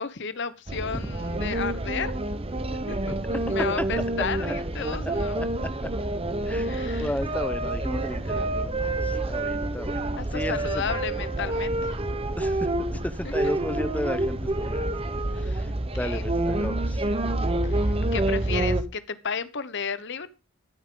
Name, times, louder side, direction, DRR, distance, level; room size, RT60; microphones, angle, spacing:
voice 1, 0.0-2.1 2.9-3.2 3.5-5.4 6.5-7.1 8.2-8.6 10.2-12.0 13.2-13.5 15.4-15.6 16.0-16.3 17.6-20.3, left 6 dB, 55° left, 14 dB, 1.0 m, -33 dB
sound 1, 0.7-18.8, right 1 dB, 25° right, 0.9 m, -28 dB
voice 2, 5.3-5.7 6.5-9.0 9.3-10.6 12.4-12.5 12.9-14.9 16.0-17.0, left 1 dB, 5° left, 13 dB, 0.7 m, -34 dB
15.0 x 9.4 x 3.8 m, 0.30 s
head